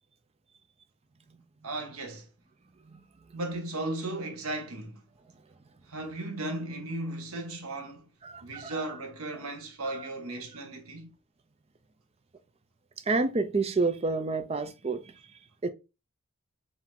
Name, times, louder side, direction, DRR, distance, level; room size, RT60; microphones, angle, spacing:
voice 1, 1.6-2.3 3.3-5.0 5.9-8.1 8.4-11.1, right 2 dB, 80° right, 1.2 m, -36 dB
voice 2, 2.8-3.4 8.2-9.0 9.3-9.4 9.8-10.1 13.0-15.7, right 3 dB, 30° right, 0.5 m, -31 dB
4.7 x 2.7 x 3.6 m
head